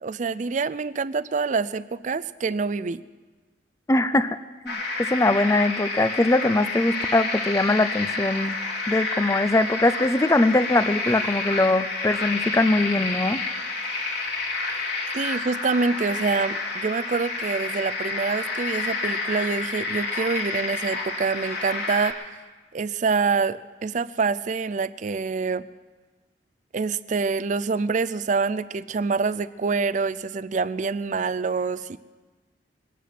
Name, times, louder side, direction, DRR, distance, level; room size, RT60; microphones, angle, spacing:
voice 1, 0.0-3.0 15.1-22.2 22.7-25.7 26.7-32.0, right 4 dB, 45° right, 15 dB, 0.4 m, -26 dB
voice 2, 3.9-4.4 4.6-8.6 8.9-13.4, left 2 dB, 15° left, 13 dB, 0.5 m, -22 dB
sound 1, 4.7-22.1, left 3 dB, 65° left, 2.3 m, -29 dB
22.5 x 9.3 x 5.9 m, 1.3 s
head